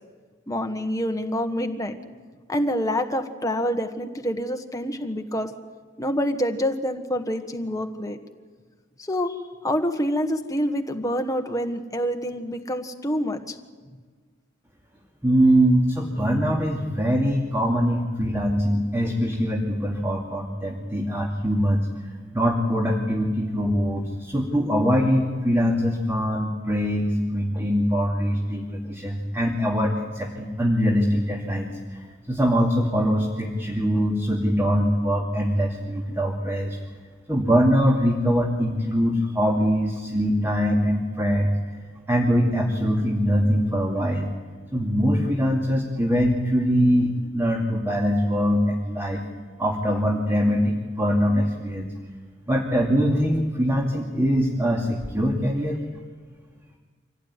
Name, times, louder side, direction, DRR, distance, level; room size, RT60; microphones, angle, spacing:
voice 1, 0.5-2.0 2.5-5.5 6.0-8.2 9.0-13.6, equal, 20° left, 5 dB, 1.4 m, -27 dB
voice 2, 15.2-21.9 22.3-36.8 37.3-41.6 42.1-44.3 44.7-49.3 49.6-51.9 52.5-55.8, equal, 15° right, 0 dB, 2.5 m, -23 dB
25.5 x 17.5 x 9.8 m, 1.5 s
head